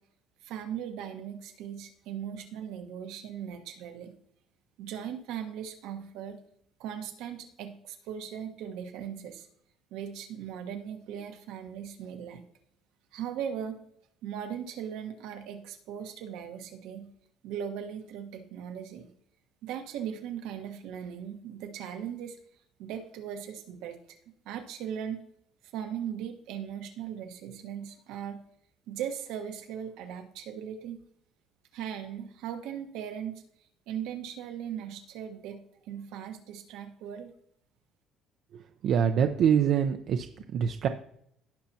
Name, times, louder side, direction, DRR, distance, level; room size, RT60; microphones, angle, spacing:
voice 1, 0.4-4.2 4.8-6.4 6.8-9.5 9.9-12.4 13.1-13.8 14.2-17.1 17.4-19.1 19.6-22.4 22.8-24.2 24.4-25.2 25.6-28.4 28.9-31.0 31.7-33.4 33.9-37.3, right 9 dB, 85° right, 5 dB, 1.3 m, -38 dB
voice 2, 38.5-40.3 40.5-40.9, right 8 dB, 60° right, 6 dB, 0.6 m, -25 dB
16.5 x 5.8 x 2.8 m, 0.70 s
cardioid pair, 115°, 0 cm